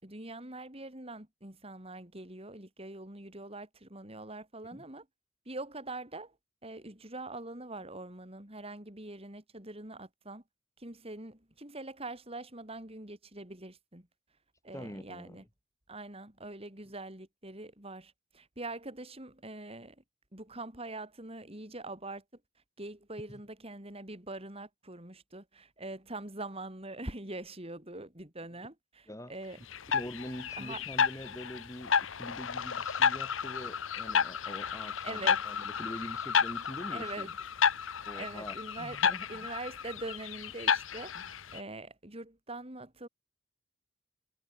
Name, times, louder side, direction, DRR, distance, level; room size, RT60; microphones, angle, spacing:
voice 1, 0.0-5.1 5.5-6.4 6.6-10.4 10.8-14.1 14.6-15.4 15.9-20.0 20.3-22.2 22.8-29.6 30.6-30.8 35.0-35.4 36.9-37.3 38.1-39.0 39.3-43.1, right 2 dB, 30° right, 4.2 m, -43 dB
voice 2, 14.7-15.4 29.1-29.3 29.9-37.3 38.1-39.5 41.2-41.3, equal, 15° left, 7.3 m, -44 dB
sound 1, 29.7-41.6, left 6 dB, 80° left, 1.0 m, -31 dB
head